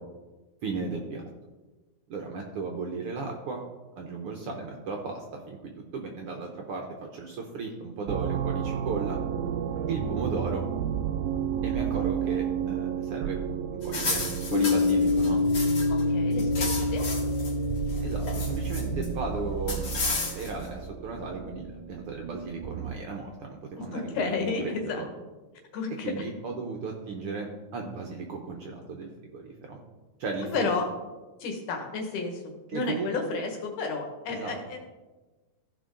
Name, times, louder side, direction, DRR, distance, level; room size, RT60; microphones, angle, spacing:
voice 1, 0.6-1.2 2.1-3.6 4.0-9.2 9.9-10.6 11.6-13.4 13.7-15.4 18.0-25.1 26.0-29.8 30.2-30.7 32.7-33.4 34.3-34.6, right 4 dB, 70° right, 2 dB, 1.4 m, -35 dB
sound 1, 8.1-23.1, right 8 dB, 85° right, 2.0 m, -32 dB
sound 2, 13.8-16.0 16.3-17.5 17.9-19.1 19.7-20.6, left 3 dB, 45° left, 2.1 m, -33 dB
sound 3, 14.5-20.0, left 4 dB, 60° left, 1.7 m, -28 dB
voice 2, 15.9-17.0 23.8-25.0 25.7-26.2 30.5-30.9 31.4-32.4 32.7-34.8, left 4 dB, 85° left, 3 dB, 3.0 m, -31 dB
15.5 x 5.3 x 3.8 m, 1.2 s
omnidirectional pair, 3.5 m